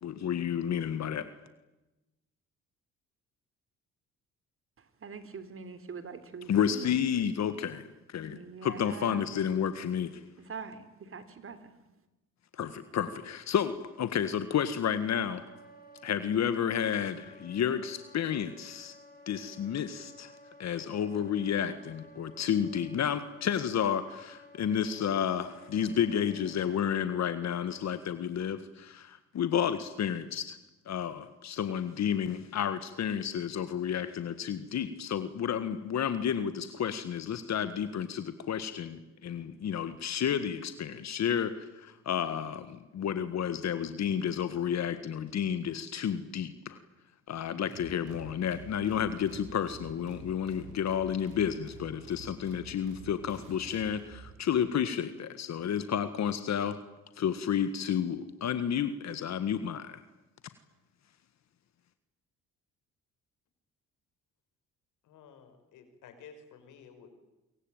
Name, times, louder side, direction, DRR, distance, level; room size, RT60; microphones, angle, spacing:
voice 1, 0.0-1.3 6.5-10.2 12.5-15.4 16.0-19.0 19.3-20.3 20.6-30.6 30.9-46.8 47.3-56.8 57.2-60.0, left 8 dB, 65° left, 11 dB, 1.8 m, -31 dB
voice 2, 4.8-7.0 8.3-9.3 10.4-11.7, right 5 dB, 45° right, 12 dB, 3.7 m, -44 dB
Wind instrument woodwind instrument, 15.0-27.9, equal, 30° left, 7.1 m, -54 dB
sound 1, 47.7-54.4, right 3 dB, 85° right, 7.6 m, -49 dB
voice 3, 65.0-67.1, left 6 dB, 85° left, 8 dB, 5.6 m, -53 dB
26.0 x 23.5 x 9.1 m, 0.99 s
cardioid pair, 90°, 30 cm